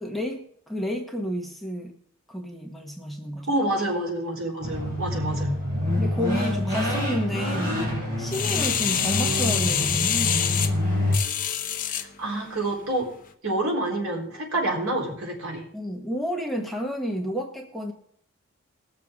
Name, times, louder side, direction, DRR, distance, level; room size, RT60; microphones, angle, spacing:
voice 1, 0.0-2.0 2.3-3.5 6.0-7.9 8.2-10.7 15.7-17.9, equal, ahead, 0 dB, 1.1 m, -31 dB
voice 2, 3.5-5.6 11.9-13.1 13.4-15.6, right 1 dB, 70° right, -1 dB, 3.9 m, -28 dB
sound 1, 4.6-11.2, left 1 dB, 45° right, 5.3 m, -27 dB
sound 2, 8.3-12.1 12.6-12.7, left 9 dB, 40° left, 0.9 m, -26 dB
20.5 x 7.0 x 3.5 m, 0.65 s
head